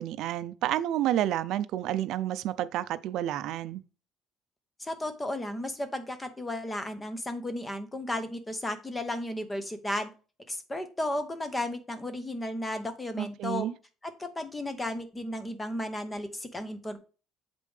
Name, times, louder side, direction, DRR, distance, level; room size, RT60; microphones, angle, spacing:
voice 1, 0.0-3.8 13.2-13.7, right 12 dB, 60° right, 0.4 m, -30 dB
voice 2, 4.8-10.1 10.5-13.7 14.0-17.0, left 1 dB, 10° left, 0.8 m, -34 dB
7.4 x 5.3 x 3.3 m
cardioid pair, 175°, 0 cm